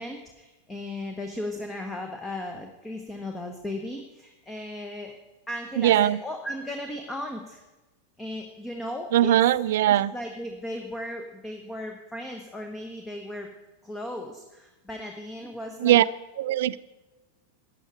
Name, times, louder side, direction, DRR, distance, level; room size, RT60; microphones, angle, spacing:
voice 1, 0.0-5.1 5.5-7.6 8.2-9.4 9.9-13.5 13.8-16.0, left 1 dB, 10° left, 4 dB, 1.2 m, -36 dB
voice 2, 5.8-6.2 9.1-10.1 15.8-16.1 16.4-16.8, right 12 dB, 55° right, 18 dB, 0.4 m, -20 dB
15.0 x 9.6 x 5.0 m, 1.1 s
figure-of-eight pair, 90°, 0 cm